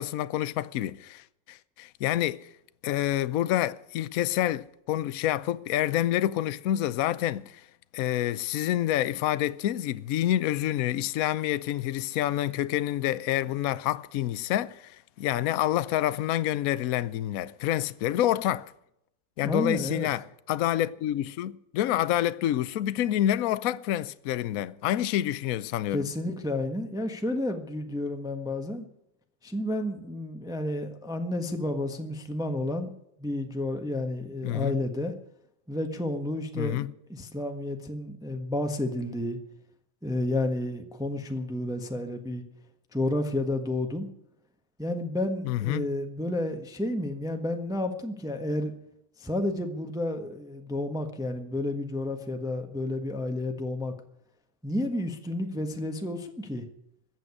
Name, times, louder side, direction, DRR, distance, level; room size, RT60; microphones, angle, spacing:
voice 1, 0.0-2.5 2.8-7.6 7.9-18.7 19.4-26.0 34.4-34.8 36.5-36.9 45.4-45.8, left 13 dB, 75° left, 0.8 m, -28 dB
voice 2, 19.4-20.1 25.9-28.9 29.4-32.9 33.2-35.1 35.7-39.4 40.0-42.4 42.9-44.1 44.8-48.7 49.2-53.9 54.6-56.6, left 1 dB, ahead, 1.0 m, -31 dB
15.0 x 8.0 x 9.7 m
omnidirectional pair, 2.3 m